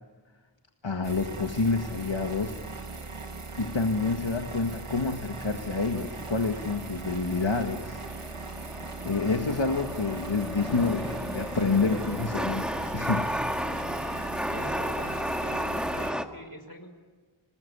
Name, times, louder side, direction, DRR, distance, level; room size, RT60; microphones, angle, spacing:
voice 1, 0.8-2.6 3.6-8.0 9.0-13.3, left 3 dB, 65° left, 4 dB, 1.8 m, -28 dB
sound 1, 1.0-16.1, right 3 dB, 90° right, 1.8 m, -40 dB
Chatter / Subway metro underground, 2.0-16.2, equal, ahead, 1.8 m, -35 dB
voice 2, 14.5-16.9, equal, 45° left, 6 dB, 5.6 m, -44 dB
27.5 x 20.0 x 9.8 m, 1.4 s
wide cardioid pair, 40°, 49 cm